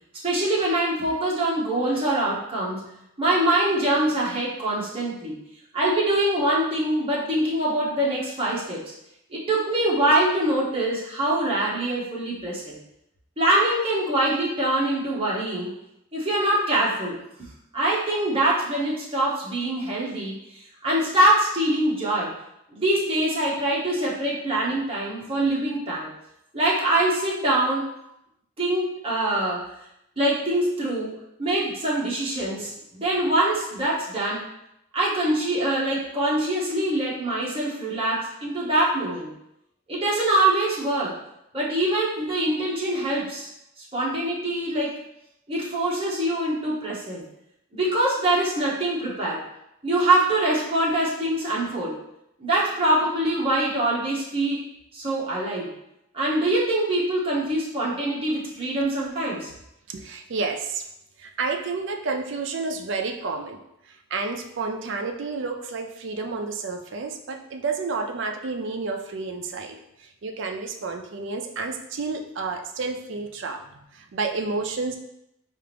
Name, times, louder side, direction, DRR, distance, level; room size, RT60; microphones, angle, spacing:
voice 1, 0.2-5.4 5.7-8.9 9.3-12.8 13.4-15.7 16.1-17.2 17.7-22.3 22.7-26.1 26.5-27.9 28.6-29.7 30.2-34.4 34.9-39.3 39.9-41.1 41.5-43.5 43.8-45.0 45.5-47.2 47.7-49.4 49.8-52.0 52.4-54.6 54.9-55.7 56.1-59.5, right 1 dB, 25° right, -6 dB, 1.0 m, -24 dB
voice 2, 59.9-60.8 61.2-63.6 63.9-75.0, right 4 dB, 55° right, 3 dB, 0.4 m, -30 dB
4.6 x 2.5 x 3.4 m, 0.81 s
head